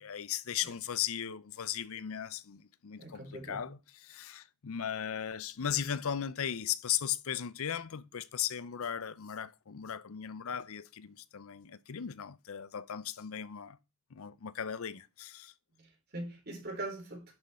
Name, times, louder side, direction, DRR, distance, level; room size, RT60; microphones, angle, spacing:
voice 1, 0.0-13.8 14.1-15.5, left 9 dB, 65° left, 0.6 m, -37 dB
voice 2, 3.0-3.7 15.8-17.3, right 2 dB, 45° right, 3.9 m, -42 dB
11.0 x 6.3 x 4.3 m
head